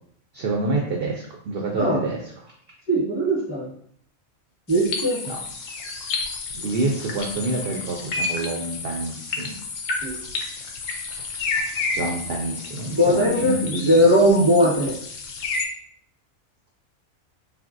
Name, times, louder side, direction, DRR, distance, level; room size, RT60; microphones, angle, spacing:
voice 1, 0.3-2.2 5.3-5.4 6.5-9.5 11.9-14.0, right 2 dB, 65° right, 0 dB, 0.6 m, -27 dB
voice 2, 2.9-3.7 4.7-5.2 10.0-10.2 12.9-15.0, equal, 10° left, -8 dB, 0.9 m, -19 dB
sound 1, 4.7-15.6, left 4 dB, 75° left, 1.0 m, -31 dB
3.4 x 2.5 x 2.5 m, 0.65 s
omnidirectional pair, 1.4 m